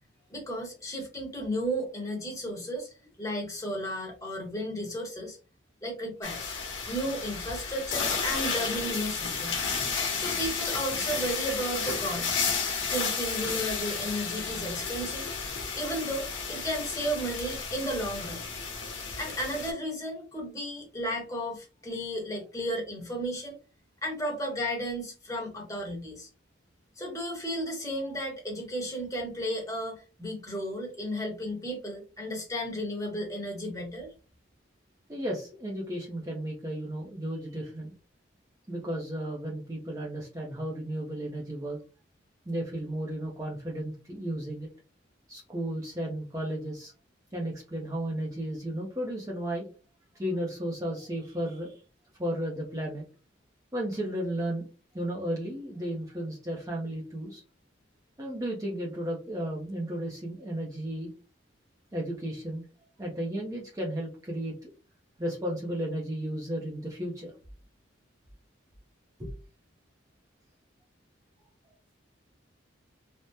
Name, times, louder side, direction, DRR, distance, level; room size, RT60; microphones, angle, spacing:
voice 1, 0.3-5.4 5.8-6.5 6.9-9.6 10.2-12.3 12.9-15.3 15.7-18.4 19.2-23.6 24.0-26.3 27.0-34.1, equal, 15° left, 0 dB, 0.9 m, -34 dB
sound 1, 6.2-19.7, left 5 dB, 75° left, 1.0 m, -32 dB
voice 2, 35.1-37.9 38.7-41.8 42.5-44.7 45.3-46.9 47.3-49.7 50.1-51.8 52.2-53.0 53.7-54.7 54.9-57.4 58.2-61.1 61.9-62.6 63.0-64.7 65.2-67.3 69.2-69.3, right 1 dB, 15° right, -3 dB, 0.5 m, -34 dB
3.4 x 2.1 x 2.7 m, 0.33 s
head